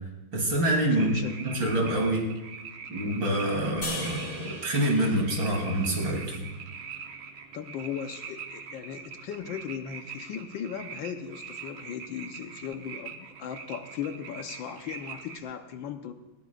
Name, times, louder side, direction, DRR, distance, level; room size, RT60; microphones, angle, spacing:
voice 1, 0.3-1.2 1.4-2.3 2.9-6.4, right 1 dB, 65° right, 0 dB, 3.8 m, -26 dB
voice 2, 0.9-1.4 7.5-16.1, left 8 dB, 75° left, 7 dB, 1.6 m, -37 dB
sound 1, 1.0-15.4, right 6 dB, 85° right, 1.8 m, -43 dB
sound 2, 3.8-7.1, left 1 dB, 60° left, 7.1 m, -40 dB
19.0 x 18.0 x 2.5 m, 1.1 s
omnidirectional pair, 2.2 m